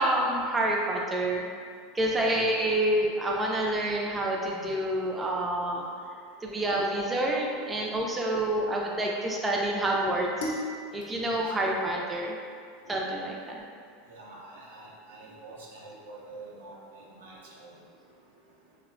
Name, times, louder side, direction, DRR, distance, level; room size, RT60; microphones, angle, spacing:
voice 1, 0.0-1.4 1.9-5.8 6.4-10.6 10.9-12.4 12.9-13.6, right 1 dB, 15° right, -2 dB, 0.3 m, -28 dB
voice 2, 2.0-2.4 11.2-11.3 14.1-17.7, right 2 dB, 80° right, -4 dB, 0.5 m, -46 dB
sound 1, 10.4-12.8, left 1 dB, 80° left, 0.5 m, -39 dB
2.8 x 2.1 x 2.4 m, 2.2 s
hypercardioid pair, 95°, 0 cm